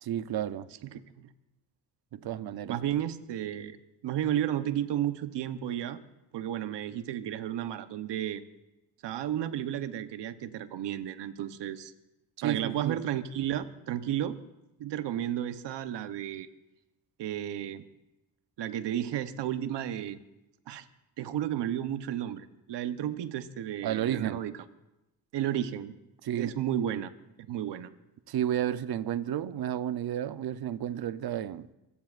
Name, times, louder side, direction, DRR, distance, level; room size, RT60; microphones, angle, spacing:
voice 1, 0.0-0.7 2.1-2.8 12.4-13.0 23.8-24.4 26.2-26.6 28.3-31.7, right 11 dB, 60° right, 0.8 m, -32 dB
voice 2, 0.8-1.3 2.7-3.8 4.0-6.0 6.3-8.4 9.0-11.9 12.4-14.4 14.8-16.5 17.2-17.8 18.6-20.2 20.7-20.8 21.2-24.5 25.3-25.9 26.3-27.1 27.5-27.9, right 11 dB, 85° right, 1.0 m, -33 dB
25.5 x 15.5 x 2.5 m
cardioid pair, 100°, 41 cm